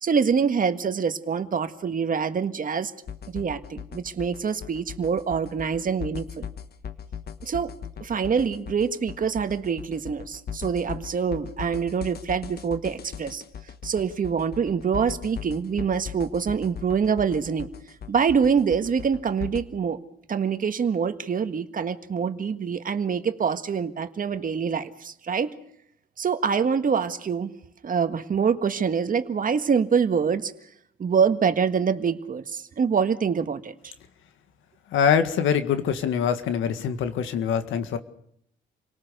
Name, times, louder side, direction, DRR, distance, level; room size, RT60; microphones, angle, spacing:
voice 1, 0.0-2.9 3.3-6.5 7.4-7.7 8.0-13.4 13.8-17.7 18.1-20.0 20.3-25.5 26.2-27.5 27.8-30.5 31.0-33.9, right 6 dB, 45° right, 9 dB, 1.7 m, -25 dB
sound 1, 3.1-19.6, left 8 dB, 50° left, 1.4 m, -39 dB
voice 2, 34.9-38.0, left 7 dB, 85° left, 9 dB, 1.9 m, -24 dB
28.5 x 18.5 x 6.8 m, 0.71 s
cardioid pair, 90°, 20 cm